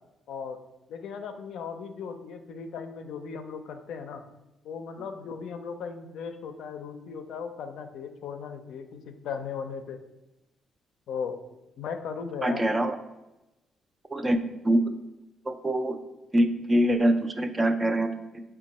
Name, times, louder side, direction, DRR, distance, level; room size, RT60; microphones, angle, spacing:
voice 1, 0.3-0.6 0.9-4.2 4.6-10.0 11.1-11.4 11.8-12.7, left 6 dB, 75° left, 7 dB, 0.4 m, -37 dB
voice 2, 12.4-13.0 14.1-14.4 14.6-14.8 15.4-16.0 16.3-18.4, right 1 dB, 20° right, 7 dB, 0.4 m, -24 dB
5.1 x 2.2 x 4.1 m, 0.97 s
cardioid pair, 90°, 0 cm